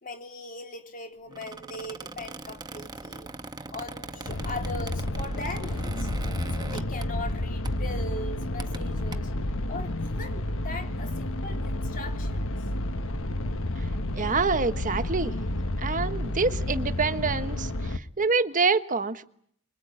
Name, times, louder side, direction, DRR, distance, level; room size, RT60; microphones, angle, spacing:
voice 1, 0.0-3.3 3.7-6.1 6.5-9.3 9.7-12.6, left 2 dB, 40° left, 3.5 m, -39 dB
Squeak, 1.3-7.4 7.6-7.9 8.4-9.1, right 2 dB, 20° right, 1.1 m, -40 dB
sound 1, 4.3-18.0, left 1 dB, 60° left, 1.2 m, -30 dB
voice 2, 14.1-15.3 15.8-19.2, right 4 dB, 35° right, 1.4 m, -26 dB
25.0 x 22.5 x 8.9 m
head